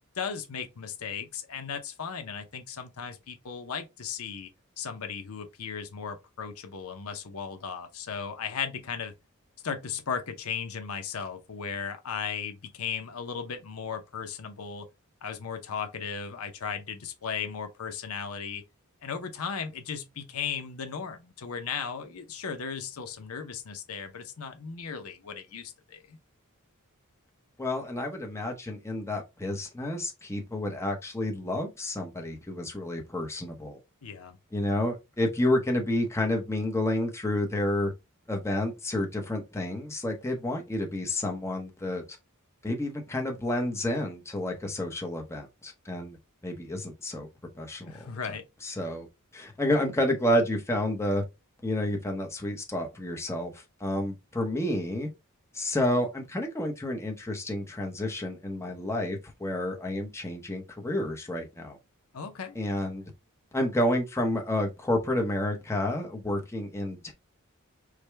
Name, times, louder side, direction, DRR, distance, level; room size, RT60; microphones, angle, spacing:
voice 1, 0.2-4.5 4.8-9.1 9.6-14.9 15.2-18.6 19.0-26.2 34.0-34.4 47.9-48.5 62.1-62.6, left 6 dB, 75° left, 0.7 m, -36 dB
voice 2, 27.6-33.8 34.5-37.9 38.3-42.0 42.6-46.2 46.4-47.3 47.5-48.1 48.6-49.1 49.3-51.2 51.6-55.1 55.5-61.8 62.5-63.1 63.5-67.1, left 1 dB, 10° left, 0.8 m, -30 dB
4.8 x 2.2 x 3.3 m
head